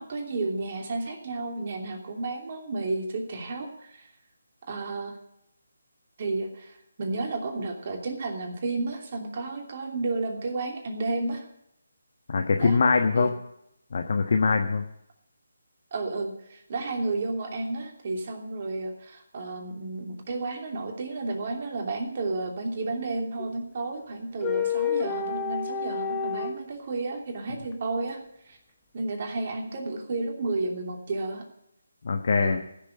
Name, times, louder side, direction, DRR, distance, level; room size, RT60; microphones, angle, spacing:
voice 1, 0.0-4.1 4.7-5.1 6.2-11.4 12.6-12.8 13.2-13.3 15.9-28.6 28.9-31.4 32.4-32.6, right 3 dB, 45° right, 2 dB, 2.9 m, -32 dB
voice 2, 12.3-13.3 13.9-14.8 32.0-32.6, left 4 dB, 55° left, 5 dB, 1.2 m, -23 dB
sound 1, 23.4-23.5 24.4-26.6, left 6 dB, 15° left, 1.1 m, -29 dB
15.0 x 7.0 x 9.8 m, 0.78 s
figure-of-eight pair, 150°, 0 cm